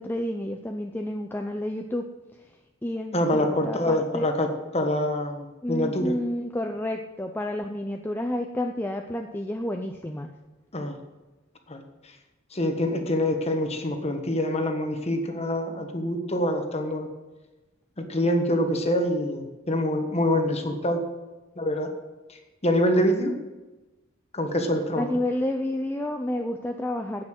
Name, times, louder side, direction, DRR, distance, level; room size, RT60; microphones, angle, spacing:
voice 1, 0.0-2.1 2.8-4.3 5.6-10.3 25.0-27.2, left 1 dB, 10° left, 3 dB, 0.5 m, -30 dB
voice 2, 3.1-6.1 10.7-11.0 11.7-12.1 12.5-17.1 18.0-21.0 21.6-21.9 22.3-23.3 24.3-25.0, left 1 dB, 30° left, 5 dB, 1.4 m, -25 dB
9.7 x 8.6 x 7.6 m, 1.1 s
head